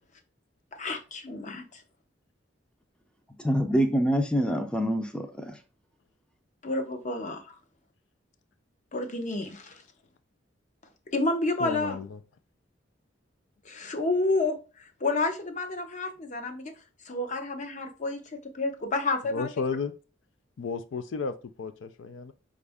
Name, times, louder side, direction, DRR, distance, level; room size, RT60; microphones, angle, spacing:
voice 1, 0.7-1.8 6.6-7.5 8.9-9.8 11.1-12.0 13.6-16.7 17.0-19.5, left 2 dB, 40° left, 0.7 m, -30 dB
voice 2, 3.4-5.6, equal, 5° left, 0.5 m, -26 dB
voice 3, 11.6-12.2 19.3-19.9 20.6-22.3, left 5 dB, 85° left, 0.4 m, -33 dB
5.2 x 2.5 x 3.4 m
head